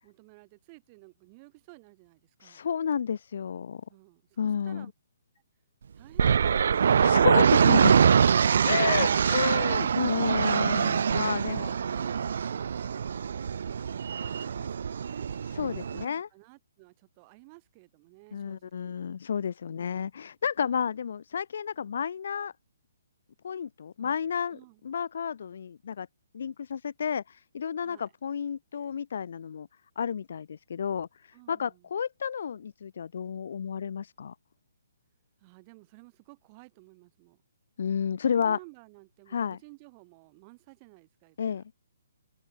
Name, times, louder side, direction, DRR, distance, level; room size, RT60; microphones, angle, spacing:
voice 1, 0.0-2.7 3.9-4.9 5.9-7.4 11.5-15.3 15.9-18.9 19.7-20.1 20.6-20.8 24.0-24.8 27.8-28.1 31.3-31.9 35.4-37.4 38.3-41.6, right 29 dB, 25° right, 1.9 m, -54 dB
voice 2, 2.4-3.8 4.4-4.9 7.0-8.0 8.6-11.7 15.5-16.3 18.3-22.5 23.4-26.1 26.3-29.7 30.0-34.3 37.8-38.6 39.3-39.6 41.4-41.7, left 7 dB, 55° left, 0.6 m, -31 dB
sound 1, 6.2-16.0, right 7 dB, 60° right, 0.4 m, -24 dB
hypercardioid pair, 165°, 0 cm